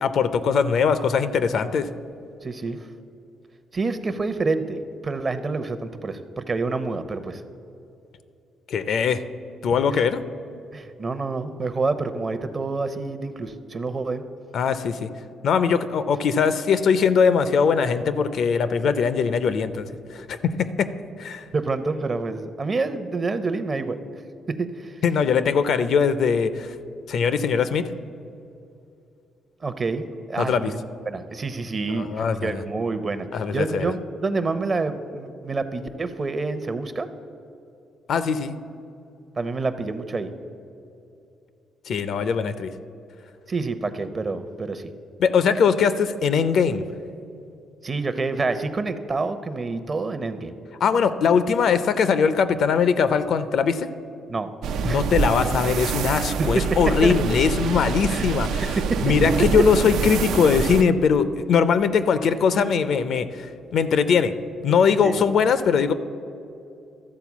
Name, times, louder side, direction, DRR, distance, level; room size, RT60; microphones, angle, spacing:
voice 1, 0.0-1.9 8.7-9.2 9.6-10.2 14.5-15.1 15.4-19.9 20.1-20.9 21.2-21.4 25.0-26.7 27.1-27.9 30.4-30.7 31.9-32.6 33.3-33.9 38.1-38.6 41.9-42.7 45.2-46.8 50.8-53.9 54.8-58.8 59.0-63.5 63.7-64.3 64.6-65.9, left 6 dB, 65° left, 12 dB, 0.5 m, -21 dB
voice 2, 2.4-2.8 3.7-7.4 9.9-10.0 10.7-14.2 21.5-24.0 24.5-24.9 29.6-30.7 31.1-33.3 33.5-37.1 39.4-40.3 43.5-44.9 47.8-50.6 54.3-54.5 54.8-55.1 56.4-57.1 58.1-58.4 58.6-59.0 65.0-65.2, right 3 dB, 35° right, 10 dB, 0.6 m, -27 dB
sound 1, 54.6-60.8, right 6 dB, 85° right, 0.4 m, -26 dB
13.0 x 4.4 x 7.1 m, 2.7 s
cardioid pair, 90°, 0 cm